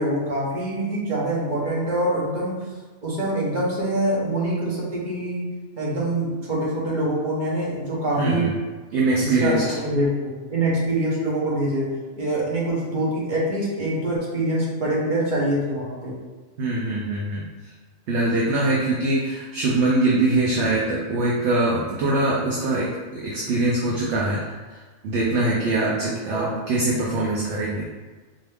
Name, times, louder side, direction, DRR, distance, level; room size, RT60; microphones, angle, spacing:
voice 1, 0.0-2.6 3.0-5.4 5.8-8.5 9.2-16.1 26.2-26.5, right 1 dB, 40° right, -6 dB, 1.2 m, -25 dB
voice 2, 8.2-8.5 8.9-9.6 16.6-17.4 18.1-24.4 25.0-27.9, right 2 dB, 65° right, -4 dB, 0.9 m, -23 dB
4.0 x 2.6 x 3.4 m, 1.3 s
omnidirectional pair, 1.4 m